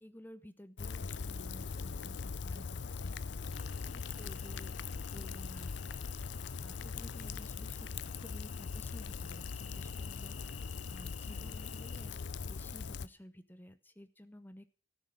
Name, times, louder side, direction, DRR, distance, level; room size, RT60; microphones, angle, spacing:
voice 1, 0.0-3.2 3.9-4.8 5.1-5.7 6.0-6.1 6.6-10.6 10.9-14.7, equal, 10° left, 12 dB, 0.7 m, -53 dB
Rain, 0.8-13.1, left 5 dB, 70° left, 0.5 m, -41 dB
sound 1, 3.5-12.1, left 5 dB, 35° left, 1.4 m, -58 dB
14.0 x 6.4 x 8.8 m, 0.41 s
head